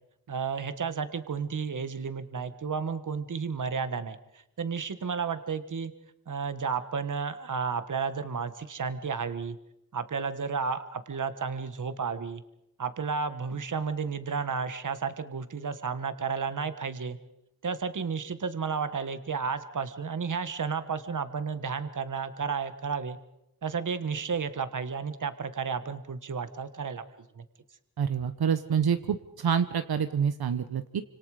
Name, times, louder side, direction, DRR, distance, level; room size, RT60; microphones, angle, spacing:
voice 1, 0.3-5.9 6.3-9.6 9.9-12.4 12.8-17.2 17.6-23.2 23.6-27.0 27.4-27.5, right 5 dB, 55° right, 11 dB, 1.5 m, -32 dB
voice 2, 28.0-31.0, right 7 dB, 85° right, 10 dB, 1.1 m, -27 dB
29.5 x 26.5 x 5.0 m, 0.84 s
wide cardioid pair, 155°, 36 cm